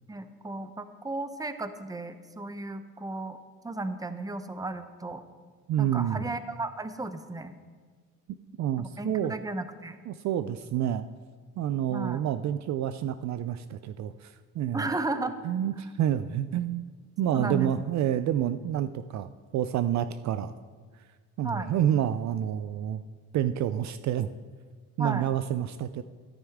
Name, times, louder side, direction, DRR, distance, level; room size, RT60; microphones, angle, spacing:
voice 1, 0.1-3.4 3.6-5.2 5.8-7.5 8.8-10.0 11.9-12.2 14.7-15.4 17.3-17.8 21.4-21.7 25.0-25.3, right 2 dB, 10° right, 10 dB, 0.8 m, -34 dB
voice 2, 5.7-6.3 8.6-9.3 10.1-11.1 11.6-14.9 15.4-16.9 17.2-20.5 21.4-23.0 23.3-24.3 25.0-26.0, right 10 dB, 50° right, 12 dB, 0.5 m, -28 dB
13.0 x 10.5 x 3.6 m, 1.5 s
supercardioid pair, 85°, 36 cm